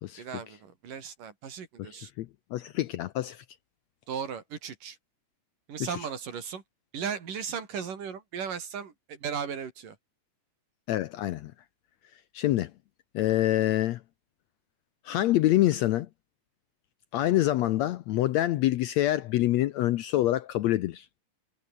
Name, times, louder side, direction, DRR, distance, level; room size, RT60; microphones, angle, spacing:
voice 1, 0.2-2.1 4.1-5.0 5.7-6.6 6.9-10.0, right 7 dB, 75° right, 4.9 m, -36 dB
voice 2, 1.8-3.4 5.8-5.9 10.9-11.5 12.3-12.7 13.1-14.0 15.0-16.1 17.1-21.1, left 14 dB, 75° left, 1.7 m, -26 dB
omnidirectional pair, 3.8 m